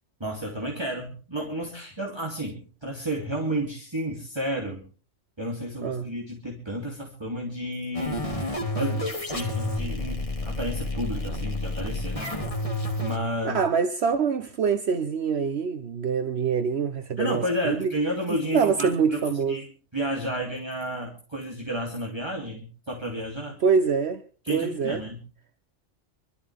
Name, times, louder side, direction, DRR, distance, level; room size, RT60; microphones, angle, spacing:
voice 1, 0.2-4.8 5.4-8.2 8.7-12.3 13.0-13.6 17.2-19.6 19.9-23.6 24.4-25.2, equal, 20° right, 3.0 m, -31 dB
sound 1, 7.9-13.2, left 1 dB, 30° left, 3.0 m, -30 dB
voice 2, 13.4-17.9 18.5-19.6 23.6-24.2 24.5-25.0, right 6 dB, 65° right, 1.1 m, -25 dB
25.0 x 13.0 x 3.5 m
omnidirectional pair, 1.2 m